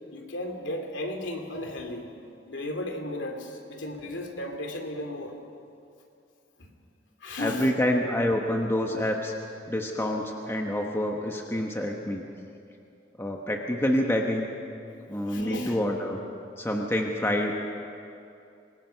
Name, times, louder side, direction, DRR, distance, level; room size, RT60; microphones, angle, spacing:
voice 1, 0.1-2.1 2.5-5.4 6.6-6.7 7.2-7.7 15.3-15.8, left 1 dB, 80° left, 3 dB, 2.7 m, -34 dB
voice 2, 7.4-9.3 9.7-12.2 13.2-14.5 15.1-16.2 16.6-17.6, left 1 dB, 15° left, 1 dB, 1.2 m, -27 dB
26.5 x 20.0 x 5.8 m, 2.6 s
head